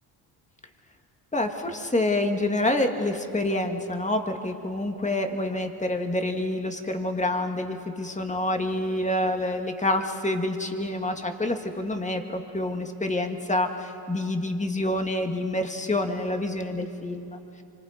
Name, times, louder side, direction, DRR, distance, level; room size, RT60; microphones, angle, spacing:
voice 1, 1.3-17.4, left 1 dB, 15° left, 5 dB, 2.1 m, -27 dB
25.0 x 24.0 x 5.2 m, 2.5 s
cardioid pair, 75°, 45 cm